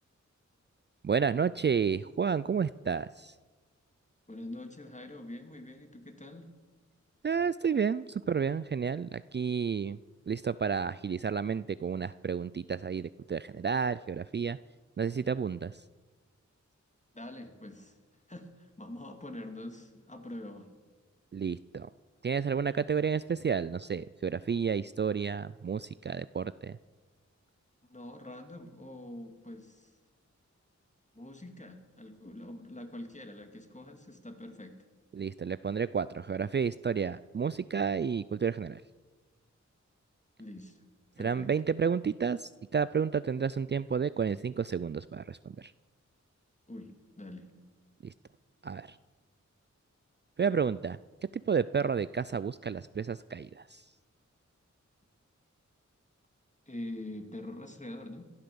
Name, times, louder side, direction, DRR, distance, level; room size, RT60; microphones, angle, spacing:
voice 1, 1.0-3.4 7.2-10.0 10.3-14.6 15.0-15.8 21.3-21.9 22.2-26.8 35.1-38.8 41.2-45.7 48.0-48.1 48.6-49.0 50.4-51.0 51.3-53.9, right 6 dB, 35° right, 16 dB, 0.4 m, -31 dB
voice 2, 4.3-6.5 17.1-18.0 18.3-20.7 27.8-29.9 31.1-34.7 40.4-40.8 41.2-41.5 46.7-47.5 56.7-58.2, left 1 dB, 25° left, 5 dB, 2.5 m, -44 dB
16.5 x 12.0 x 6.9 m, 1.3 s
cardioid pair, 50°, 30 cm